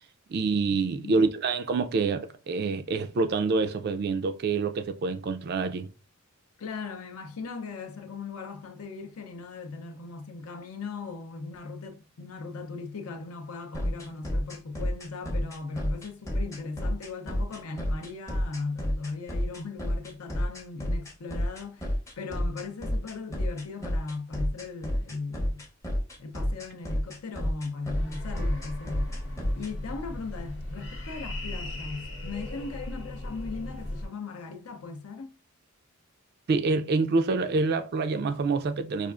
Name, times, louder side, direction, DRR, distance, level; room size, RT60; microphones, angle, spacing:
voice 1, 0.3-5.9 36.5-39.1, right 4 dB, 45° right, 0.3 m, -26 dB
voice 2, 6.6-25.7 26.2-29.2 29.6-35.3, left 4 dB, 70° left, 0.5 m, -38 dB
sound 1, 13.7-29.7, equal, 15° left, 0.6 m, -29 dB
sound 2, 27.9-34.1, left 1 dB, 50° left, 0.9 m, -37 dB
4.9 x 2.4 x 2.3 m
head